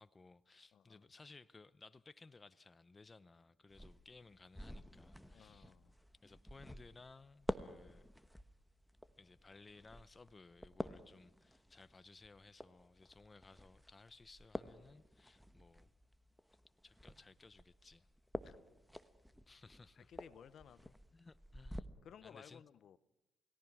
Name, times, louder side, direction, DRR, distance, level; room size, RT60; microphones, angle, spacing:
voice 1, 0.0-5.7 6.2-8.1 9.2-15.9 16.8-18.1 19.5-20.1 21.1-21.9 22.2-22.6, left 3 dB, 25° left, 0.7 m, -60 dB
voice 2, 0.7-1.1 5.3-6.0 18.4-18.6 20.0-21.0 22.0-23.0, left 8 dB, 65° left, 0.7 m, -58 dB
sound 1, 3.7-21.8, equal, 5° left, 1.1 m, -50 dB
29.0 x 18.0 x 6.1 m
cardioid pair, 90°, 0 cm